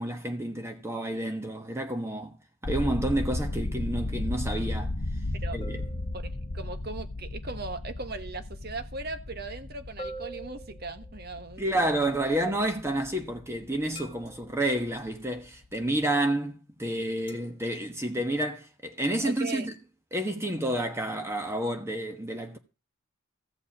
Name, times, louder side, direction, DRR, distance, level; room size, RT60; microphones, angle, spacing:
voice 1, 0.0-2.4 2.6-4.9 5.5-5.8 11.6-19.7 20.1-22.6, right 1 dB, 10° right, 1.1 m, -30 dB
sound 1, 2.6-14.5 14.8-15.1 15.5-15.7, left 2 dB, 55° left, 0.9 m, -35 dB
sound 2, 5.6-6.7 10.0-11.4 14.0-14.7 17.3-17.6, right 2 dB, 25° left, 1.8 m, -44 dB
voice 2, 6.1-11.6 19.2-19.7, right 3 dB, 45° right, 1.3 m, -38 dB
14.5 x 5.4 x 8.6 m
head